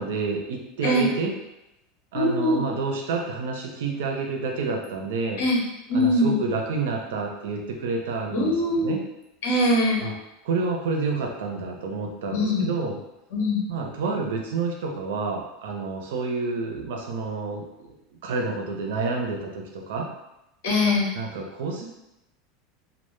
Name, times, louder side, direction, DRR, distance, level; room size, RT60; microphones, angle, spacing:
voice 1, 0.0-1.3 2.1-5.4 5.9-9.0 10.0-10.1 10.4-13.0 13.7-17.9 18.2-20.1 21.1-21.9, right 4 dB, 85° right, 1 dB, 0.5 m, -29 dB
voice 2, 2.1-2.6 5.4-5.6 5.9-6.3 8.3-9.0 9.4-10.0 12.3-12.7 13.3-13.6 20.6-21.1, left 1 dB, 70° left, -4 dB, 0.8 m, -22 dB
2.0 x 2.0 x 3.1 m, 0.89 s
supercardioid pair, 150°, 0 cm